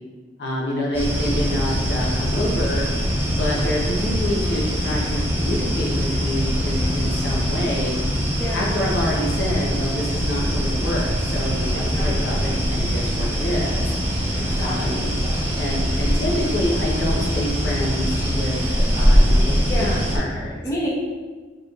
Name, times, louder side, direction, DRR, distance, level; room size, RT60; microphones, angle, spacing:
voice 1, 0.4-2.8 3.3-7.9 8.5-13.9 14.6-19.9 20.1-20.6, left 1 dB, 65° left, -3 dB, 0.8 m, -27 dB
sound 1, 0.9-20.2, equal, 10° right, 0.7 m, -22 dB
voice 2, 8.3-8.9 11.7-12.6 14.3-15.2 19.6-20.1 20.5-20.9, equal, 15° left, -6 dB, 0.8 m, -31 dB
4.8 x 3.0 x 2.4 m, 1.4 s
head